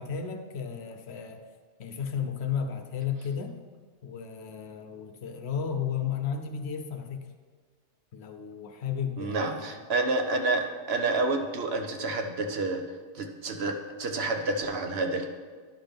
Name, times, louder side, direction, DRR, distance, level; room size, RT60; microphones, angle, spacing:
voice 1, 0.0-1.4 1.8-3.6 4.0-7.3 8.1-9.8, left 7 dB, 65° left, 6 dB, 0.9 m, -33 dB
voice 2, 9.2-12.8 13.1-15.3, right 3 dB, 65° right, 5 dB, 0.9 m, -29 dB
11.0 x 5.8 x 3.5 m, 1.5 s
omnidirectional pair, 1.2 m